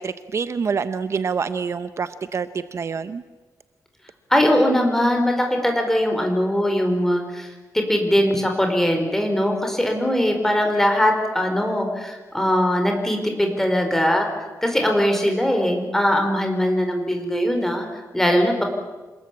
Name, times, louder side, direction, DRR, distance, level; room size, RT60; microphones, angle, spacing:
voice 1, 0.0-3.2, right 5 dB, 45° right, 12 dB, 0.8 m, -26 dB
voice 2, 4.3-14.3 14.6-18.6, equal, 5° left, 3 dB, 4.9 m, -21 dB
27.0 x 20.0 x 8.6 m, 1.3 s
wide cardioid pair, 130°, 6 cm